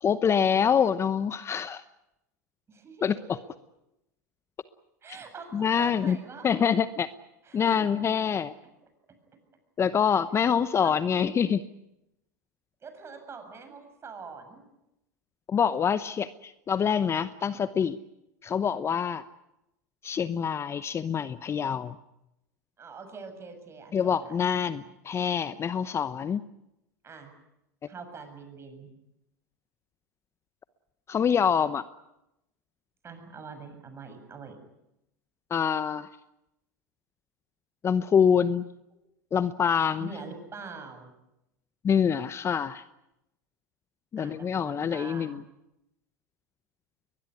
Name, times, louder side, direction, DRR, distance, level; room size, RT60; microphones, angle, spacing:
voice 1, 0.0-1.8 3.0-3.4 5.5-6.2 6.4-7.1 7.5-8.5 9.8-11.6 15.5-18.0 18.4-19.2 20.0-21.9 23.9-26.4 31.1-31.8 35.5-36.1 37.8-38.7 39.3-40.1 41.8-42.8 44.1-45.4, left 7 dB, 30° left, 15 dB, 0.8 m, -25 dB
voice 2, 2.7-3.4 5.0-6.5 7.4-7.9 10.8-10.9 12.8-14.7 22.8-24.3 24.8-24.9 27.0-27.3 27.8-28.9 33.0-34.6 40.0-41.1 44.2-45.4, right 5 dB, 25° right, 7 dB, 7.3 m, -44 dB
22.5 x 20.5 x 9.6 m, 0.87 s
hypercardioid pair, 90°, 10 cm